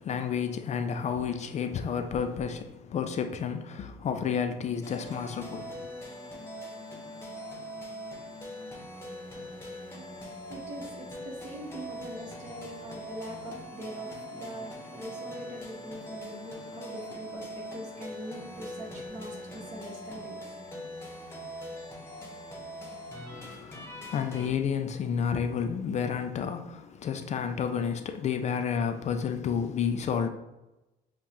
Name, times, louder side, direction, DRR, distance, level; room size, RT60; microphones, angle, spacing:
voice 1, 0.0-5.9 23.3-30.3, left 7 dB, 45° left, 0.4 m, -31 dB
sound 1, 4.8-24.5, equal, 15° left, 1.0 m, -42 dB
voice 2, 10.1-20.9, right 1 dB, 45° right, 1.6 m, -43 dB
7.1 x 2.4 x 3.0 m
cardioid pair, 110°, 17 cm